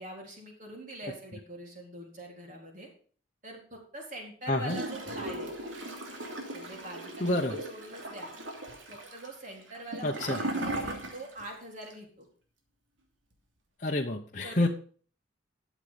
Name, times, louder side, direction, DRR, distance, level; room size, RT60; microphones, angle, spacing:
voice 1, 0.0-2.9 3.4-5.5 6.5-8.3 8.9-12.3 14.4-14.7, right 1 dB, 40° right, 0 dB, 3.9 m, -44 dB
voice 2, 4.5-4.8 7.2-7.5 10.0-10.4 13.8-14.7, left 1 dB, 40° left, 0 dB, 1.0 m, -28 dB
Gurgling / Toilet flush, 4.7-11.5 11.8-11.9, right 1 dB, 85° right, 2.8 m, -37 dB
12.5 x 7.5 x 5.1 m, 0.43 s
head